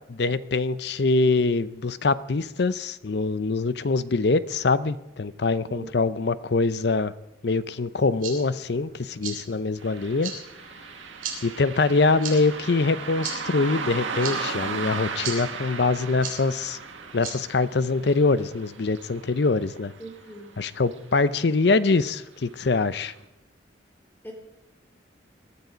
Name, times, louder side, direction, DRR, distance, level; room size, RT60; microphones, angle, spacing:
voice 1, 0.1-7.1 7.4-10.3 11.4-16.8 17.1-19.9 20.6-23.1, left 3 dB, 60° left, 15 dB, 0.6 m, -24 dB
voice 2, 5.6-6.2 20.0-20.5 24.2-24.3, right 2 dB, 10° left, 1 dB, 2.9 m, -41 dB
sound 1, 7.9-18.1, right 5 dB, 45° right, 3.7 m, -40 dB
Car passing by, 9.8-20.6 20.9-21.0 21.9-22.1 22.6-22.7 23.2-23.3, right 5 dB, 80° right, 1.5 m, -36 dB
20.5 x 12.0 x 5.1 m, 0.94 s
head